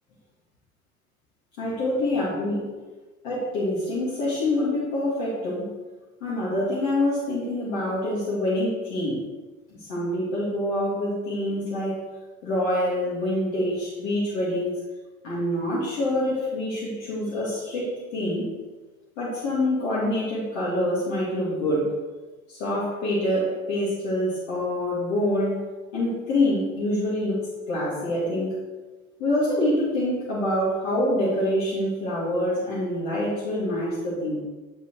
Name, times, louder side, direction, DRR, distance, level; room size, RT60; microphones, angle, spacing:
voice 1, 1.6-2.7 3.2-5.7 6.2-9.2 9.7-12.0 12.4-14.8 15.2-18.5 19.2-21.9 22.5-25.6 25.9-27.4 27.7-28.6 29.2-34.4, left 1 dB, 70° left, -8 dB, 2.8 m, -26 dB
8.8 x 5.3 x 4.8 m, 1.3 s
hypercardioid pair, 75°, 40 cm